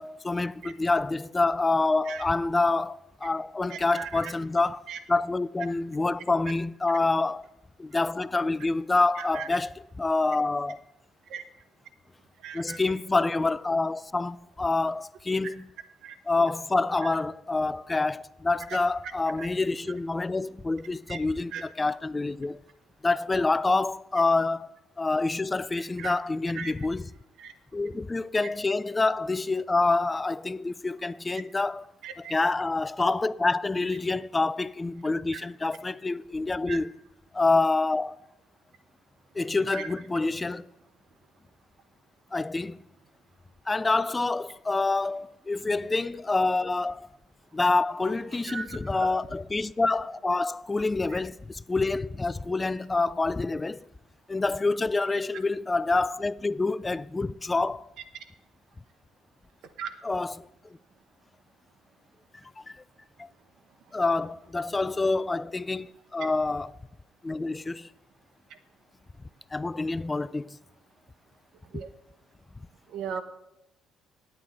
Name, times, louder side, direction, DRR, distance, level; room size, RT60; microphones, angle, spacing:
voice 1, 0.0-7.4 7.8-10.8 12.5-15.7 16.3-22.6 23.0-24.7 25.0-27.1 27.7-31.8 32.2-36.9 37.3-38.2 39.3-40.7 42.3-42.8 43.7-47.2 47.5-53.9 54.3-57.9 60.0-60.8 62.6-62.8 63.2-63.3 63.9-66.7 67.2-67.9 69.5-70.6 71.7-71.8, left 3 dB, 20° left, 0.3 m, -27 dB
voice 2, 3.7-4.3 4.9-5.0 6.9-7.0 9.2-9.5 11.3-11.4 12.4-12.8 16.0-16.2 17.0-17.1 19.4-19.5 21.1-21.2 21.5-21.6 26.0-26.1 26.6-26.7 27.4-27.5 32.0-32.3 35.3-35.4 36.7-36.8 39.7-39.9 48.4-48.8 51.1-51.2 59.8-59.9 71.7-71.9 72.9-73.2, right 7 dB, 70° right, 1.0 m, -37 dB
9.2 x 8.8 x 4.3 m
supercardioid pair, 85°, 0 cm